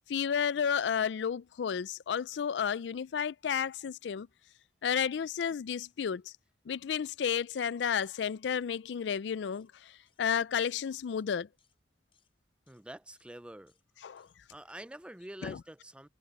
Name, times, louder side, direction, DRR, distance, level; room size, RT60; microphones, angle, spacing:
voice 1, 0.1-4.3 4.8-6.3 6.7-11.5 14.0-14.3 15.4-15.6, left 7 dB, 75° left, 0.4 m, -32 dB
sound 1, 9.5-9.7 10.1-10.2 10.6-10.7 11.1-11.3 11.6-11.8 12.1-12.3 12.7-12.8 13.1-13.3 13.7-13.9 14.2-14.4 14.7-14.8, left 7 dB, 30° left, 6.8 m, -73 dB
voice 2, 12.7-13.7 14.0-16.1, right 1 dB, 5° right, 0.4 m, -47 dB
head